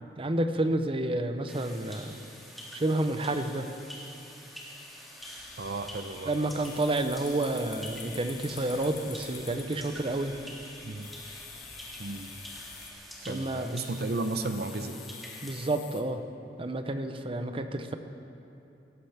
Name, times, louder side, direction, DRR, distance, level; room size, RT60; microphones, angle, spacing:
voice 1, 0.2-2.2 2.7-3.7 6.3-10.3 13.3-13.7 15.4-16.2 16.6-18.0, right 2 dB, 30° right, 8 dB, 0.7 m, -30 dB
sound 1, 1.5-15.7, equal, ahead, 1.9 m, -47 dB
sound 2, 3.7-3.8 4.2-4.3 4.8-4.9 5.2-5.3 6.6-9.6 10.9-12.9 13.8-16.0, left 10 dB, 90° left, 1.0 m, -50 dB
sound 3, 5.2-12.9, left 3 dB, 40° left, 2.1 m, -49 dB
voice 2, 5.6-6.3 10.8-11.1 12.0-12.3 13.2-15.0, right 2 dB, 60° right, 9 dB, 0.7 m, -34 dB
17.5 x 14.5 x 3.5 m, 2.8 s
head